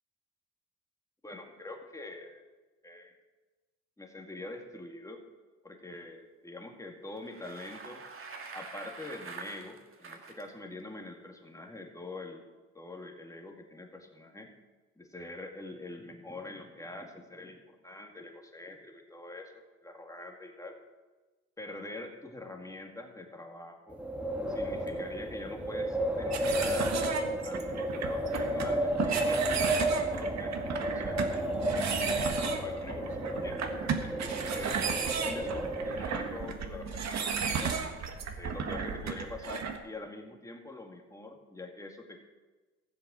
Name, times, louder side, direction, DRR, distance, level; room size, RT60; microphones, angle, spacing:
voice 1, 1.2-2.4 2.8-3.1 4.0-5.2 5.6-8.0 8.5-12.5 12.7-14.5 15.0-20.8 21.6-24.0 24.5-26.9 27.4-31.2 31.7-33.6 34.2-37.8 38.4-42.3, left 2 dB, 10° left, 2 dB, 2.1 m, -45 dB
Bicycle, 7.1-10.4, right 4 dB, 45° right, 1.8 m, -45 dB
Wind, 23.9-36.5, right 1 dB, 5° right, 1.6 m, -32 dB
sound 1, 26.3-39.8, right 6 dB, 65° right, 1.6 m, -34 dB
15.0 x 7.7 x 6.3 m, 1.2 s
cardioid pair, 90°, 30 cm